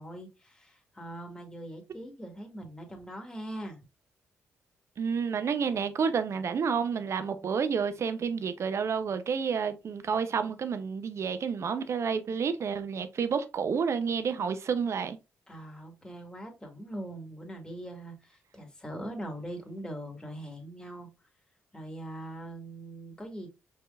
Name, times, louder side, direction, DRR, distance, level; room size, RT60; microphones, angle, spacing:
voice 1, 0.0-3.8 15.5-21.1 21.7-23.5, right 1 dB, 15° left, 2.1 m, -41 dB
voice 2, 5.0-15.2, right 6 dB, 55° right, 0.8 m, -30 dB
5.5 x 3.7 x 2.5 m
supercardioid pair, 55°, 6 cm